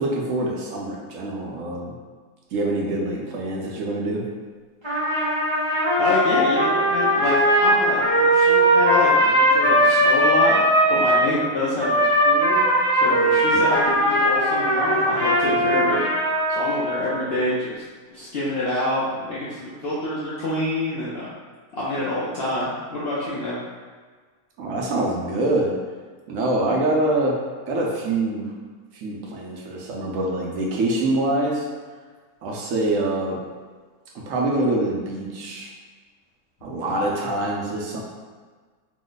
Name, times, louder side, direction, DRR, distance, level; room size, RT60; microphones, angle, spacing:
voice 1, 0.0-1.9 2.5-4.2 24.6-25.8 26.3-27.4 27.7-28.5 28.9-31.7 32.4-33.4 34.2-35.7 36.6-38.0, right 2 dB, 70° right, -2 dB, 0.9 m, -25 dB
Trumpet, 4.8-11.3 11.8-17.1, equal, 25° right, 0.6 m, -19 dB
voice 2, 6.0-10.6 10.9-12.7 12.9-16.0 16.5-17.8 18.1-21.3 21.7-23.6, left 1 dB, 65° left, -8 dB, 0.6 m, -27 dB
3.0 x 2.1 x 3.8 m, 1.5 s
omnidirectional pair, 1.6 m